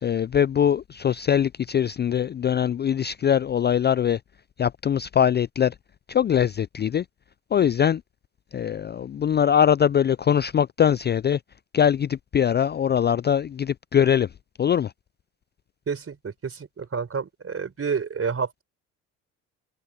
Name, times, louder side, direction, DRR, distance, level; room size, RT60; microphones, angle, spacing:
voice 1, 0.0-4.2 4.6-5.7 6.1-7.0 7.5-8.0 8.5-11.4 11.7-14.3 14.6-14.9, left 9 dB, 30° left, 0.4 m, -22 dB
voice 2, 15.9-18.6, right 6 dB, 35° right, 4.5 m, -29 dB
hypercardioid pair, 60°, 37 cm